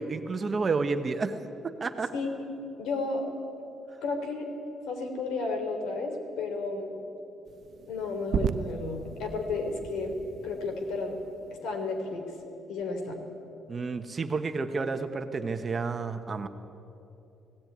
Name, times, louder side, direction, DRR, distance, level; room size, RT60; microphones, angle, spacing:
voice 1, 0.0-1.4 1.6-2.1 13.7-16.5, right 4 dB, 30° right, 8 dB, 1.0 m, -30 dB
voice 2, 2.8-3.2 4.0-4.5 4.9-6.9 7.9-10.2 10.4-11.2 11.6-12.2 12.7-13.2, left 3 dB, 90° left, 4 dB, 3.4 m, -32 dB
sound 1, 7.5-11.8, right 8 dB, 50° right, 0.5 m, -36 dB
17.5 x 16.5 x 9.5 m, 2.9 s
cardioid pair, 140°, 0 cm